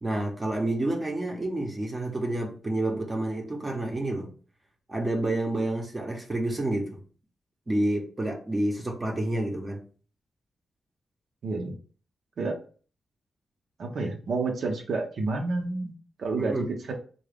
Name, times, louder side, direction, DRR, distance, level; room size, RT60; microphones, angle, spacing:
voice 1, 0.0-4.3 4.9-7.0 7.7-9.8 16.4-16.6, right 1 dB, 25° right, 2 dB, 0.8 m, -29 dB
voice 2, 11.4-11.7 12.4-12.6 13.8-16.9, right 3 dB, 70° right, 2 dB, 0.7 m, -30 dB
3.7 x 2.2 x 3.4 m, 0.40 s
wide cardioid pair, 115°, 0 cm